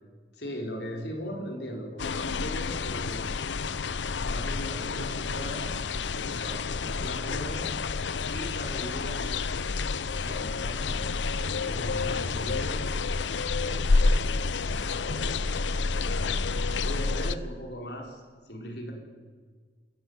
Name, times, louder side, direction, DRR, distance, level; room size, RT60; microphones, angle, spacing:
voice 1, 0.3-3.4 4.2-5.8 6.1-7.7 8.2-18.9, equal, 75° left, 1 dB, 4.7 m, -40 dB
sound 1, 2.0-17.3, left 4 dB, 90° left, 0.7 m, -29 dB
26.5 x 14.5 x 9.6 m, 1.6 s
head